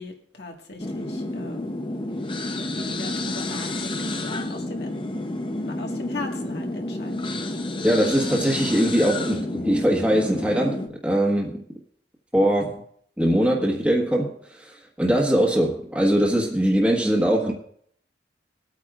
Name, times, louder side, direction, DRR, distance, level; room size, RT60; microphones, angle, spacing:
voice 1, 0.0-1.6 2.8-5.0 5.6-7.3, left 2 dB, 65° left, 1.7 m, -38 dB
sound 1, 0.8-10.9, left 2 dB, 30° left, 0.7 m, -30 dB
voice 2, 7.8-11.6 12.3-12.8 13.2-14.3 14.6-17.5, equal, 5° right, 1.4 m, -21 dB
21.5 x 8.9 x 2.5 m
head